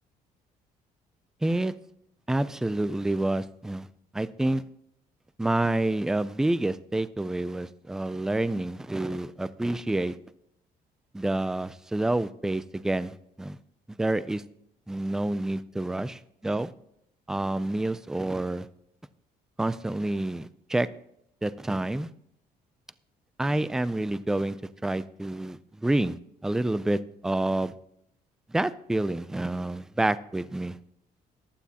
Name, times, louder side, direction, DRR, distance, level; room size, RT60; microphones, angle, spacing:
voice 1, 1.4-1.7 2.3-3.9 4.1-4.6 5.4-10.2 11.1-13.6 13.9-14.4 14.9-16.1 16.4-16.7 17.3-18.7 19.6-20.9 21.4-22.1 23.4-26.2 26.4-27.7 28.5-30.8, right 2 dB, 5° right, 15 dB, 0.3 m, -28 dB
15.5 x 11.5 x 2.8 m, 0.74 s
cardioid pair, 165°, 16 cm